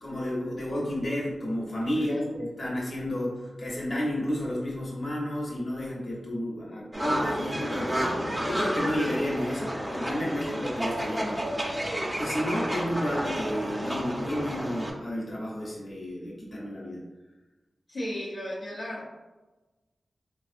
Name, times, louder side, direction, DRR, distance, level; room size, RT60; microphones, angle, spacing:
voice 1, 0.0-11.5 12.2-17.0, left 1 dB, 55° left, -4 dB, 1.0 m, -31 dB
sound 1, 6.9-14.9, right 1 dB, 10° right, 0.6 m, -31 dB
voice 2, 17.9-19.1, equal, 75° left, -9 dB, 0.8 m, -34 dB
3.4 x 2.3 x 2.5 m, 1.1 s
cardioid pair, 50°, 0 cm